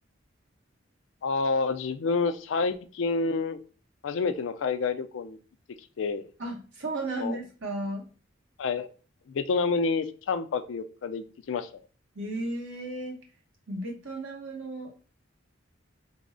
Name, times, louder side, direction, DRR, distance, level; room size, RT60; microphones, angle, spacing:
voice 1, 1.2-3.6 4.0-5.4 6.0-6.3 7.2-7.4 8.6-8.9 9.3-11.8, left 4 dB, 80° left, 10 dB, 0.4 m, -28 dB
voice 2, 6.4-8.0 12.1-13.2 13.7-14.9, right 2 dB, 80° right, -1 dB, 1.2 m, -34 dB
3.4 x 2.0 x 3.7 m, 0.38 s
head